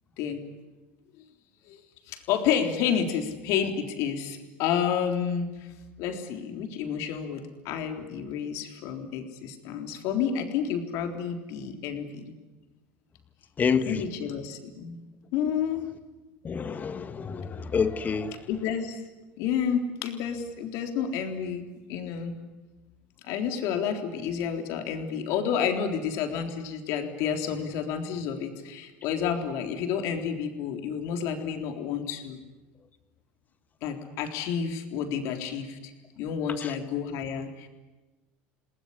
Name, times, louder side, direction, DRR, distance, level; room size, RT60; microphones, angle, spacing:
voice 1, 2.1-5.7 6.0-12.3 13.9-15.0 15.3-15.9 18.5-19.0 19.4-22.4 23.2-32.4 33.8-37.7, left 7 dB, 70° left, 5 dB, 3.7 m, -30 dB
voice 2, 13.6-14.0 16.4-18.4 36.6-36.7, left 6 dB, 30° left, 10 dB, 1.7 m, -28 dB
28.5 x 19.5 x 10.0 m, 1.2 s
supercardioid pair, 100°, 5 cm